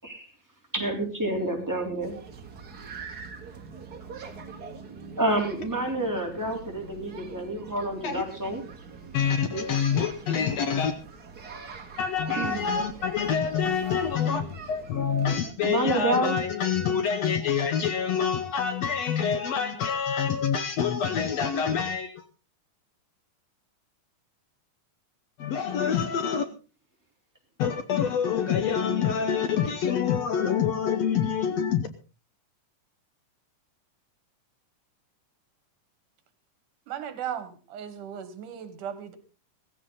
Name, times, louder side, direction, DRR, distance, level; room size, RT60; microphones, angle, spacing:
voice 1, 0.7-2.1 5.2-8.6 9.5-9.7 12.3-12.7 15.6-16.4, right 1 dB, 5° right, 0 dB, 3.5 m, -28 dB
sound 1, 2.0-15.5, right 5 dB, 35° right, 1.8 m, -44 dB
voice 2, 9.1-10.9 12.0-22.3 25.4-26.5 27.6-31.9, left 7 dB, 65° left, 10 dB, 1.8 m, -26 dB
voice 3, 36.9-39.2, right 9 dB, 80° right, 11 dB, 3.1 m, -36 dB
17.0 x 15.5 x 4.0 m, 0.33 s
omnidirectional pair, 3.6 m